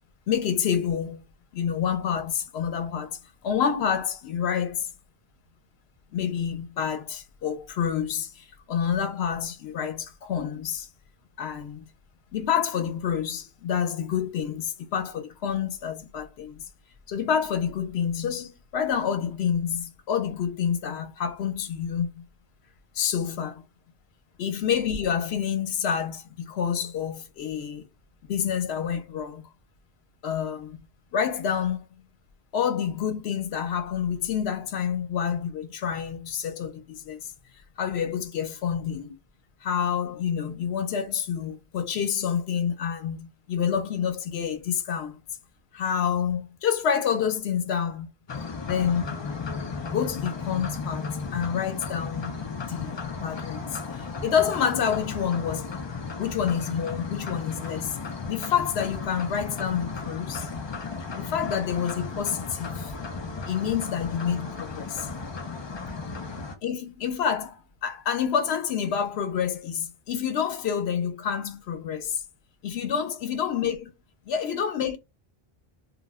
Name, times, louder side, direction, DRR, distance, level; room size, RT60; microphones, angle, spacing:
voice 1, 0.3-1.2 1.5-3.2 3.4-4.9 6.1-10.9 11.4-11.9 12.3-16.6 17.1-22.2 22.9-23.6 24.4-27.9 28.3-29.5 30.2-30.8 31.1-31.9 32.5-37.3 37.8-39.2 39.6-45.2 45.7-48.1 48.7-49.2 49.9-52.3 52.7-55.7 56.2-58.0 58.3-60.5 61.1-62.9 63.4-65.1 66.6-72.2 72.6-73.9 74.3-75.0, left 8 dB, 90° left, 0.8 m, -28 dB
sound 1, 48.3-66.5, left 4 dB, 45° left, 0.3 m, -35 dB
2.3 x 2.0 x 3.4 m
omnidirectional pair, 1.0 m